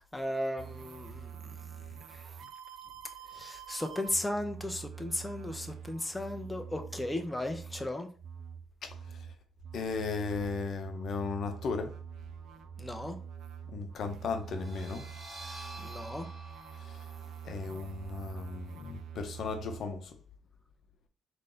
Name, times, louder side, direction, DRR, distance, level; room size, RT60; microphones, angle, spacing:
voice 1, 0.1-1.3 3.4-8.1 12.8-13.2 15.8-16.3, left 1 dB, 10° left, 0.5 m, -35 dB
sound 1, 0.6-19.8, right 7 dB, 75° right, 0.4 m, -46 dB
voice 2, 9.7-11.9 13.7-15.0 17.4-20.1, left 4 dB, 65° left, 0.7 m, -35 dB
sound 2, 14.4-19.9, right 1 dB, 40° right, 1.3 m, -50 dB
3.8 x 2.6 x 3.8 m
cardioid pair, 90°, 0 cm